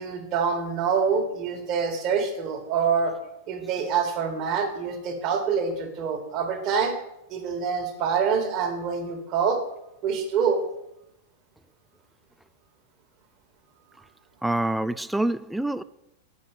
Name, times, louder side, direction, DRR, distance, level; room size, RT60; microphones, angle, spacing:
voice 1, 0.0-3.1 3.5-6.9 7.3-9.6 10.0-10.6, right 6 dB, 40° right, 1.9 m, -26 dB
voice 2, 14.4-15.8, right 1 dB, 5° right, 0.3 m, -26 dB
8.0 x 5.3 x 6.7 m
figure-of-eight pair, 95°, 0 cm